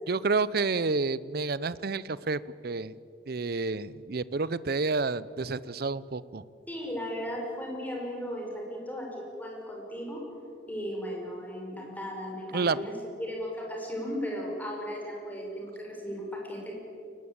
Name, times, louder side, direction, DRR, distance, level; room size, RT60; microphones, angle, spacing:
voice 1, 0.1-2.9 3.3-6.4 12.5-12.8, right 4 dB, 50° right, 18 dB, 0.6 m, -29 dB
voice 2, 6.7-9.1 9.3-10.2 10.7-12.9 13.2-16.8, equal, 10° left, -1 dB, 5.3 m, -36 dB
22.0 x 19.0 x 8.8 m, 2.5 s
head